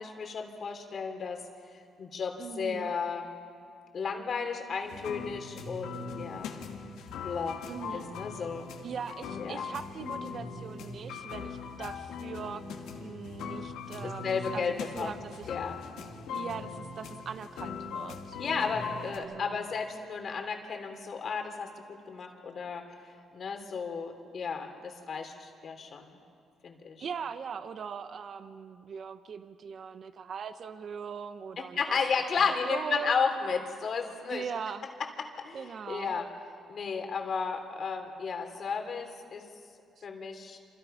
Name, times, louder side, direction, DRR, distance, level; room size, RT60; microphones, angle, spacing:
voice 1, 0.0-1.4 2.0-3.3 3.9-6.6 7.2-7.6 7.9-8.7 9.4-9.6 14.0-15.2 15.5-15.8 18.4-22.9 23.3-26.1 26.6-27.0 31.6-34.4 35.0-36.3 36.7-39.5 40.0-40.6, left 5 dB, 55° left, 4 dB, 3.3 m, -33 dB
voice 2, 2.4-2.9 7.7-8.1 8.8-12.6 13.0-14.6 14.9-15.5 16.3-18.4 19.2-19.6 27.0-32.0 32.7-33.3 34.3-34.9 35.5-36.2 40.0-40.1, right 6 dB, 55° right, 11 dB, 1.0 m, -40 dB
sound 1, 4.8-19.2, left 5 dB, 85° left, 2.5 m, -40 dB
27.5 x 27.0 x 5.8 m, 2.3 s
cardioid pair, 90°, 0 cm